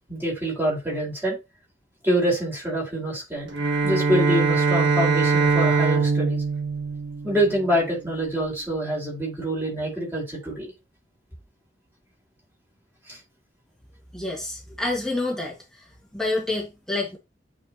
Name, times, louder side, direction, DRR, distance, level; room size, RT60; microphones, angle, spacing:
voice 1, 0.1-1.4 2.0-3.5 3.8-6.4 7.2-10.7 13.1-13.2, equal, 15° right, 4.7 m, -26 dB
Bowed string instrument, 3.4-7.9, right 4 dB, 75° right, 1.6 m, -22 dB
voice 2, 14.1-15.6 16.1-17.2, left 2 dB, 5° left, 1.9 m, -27 dB
9.0 x 4.4 x 3.0 m
head